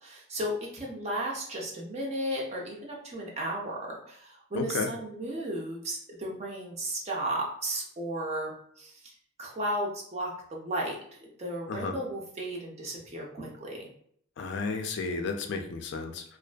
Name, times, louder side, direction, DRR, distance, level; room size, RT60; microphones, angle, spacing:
voice 1, 0.0-8.5 8.8-9.1 9.4-11.0 11.4-13.9, right 1 dB, 30° right, -1 dB, 0.4 m, -34 dB
voice 2, 4.5-4.9 11.7-11.9 14.4-16.4, left 4 dB, 55° left, 5 dB, 0.3 m, -33 dB
2.4 x 2.4 x 2.2 m, 0.66 s
head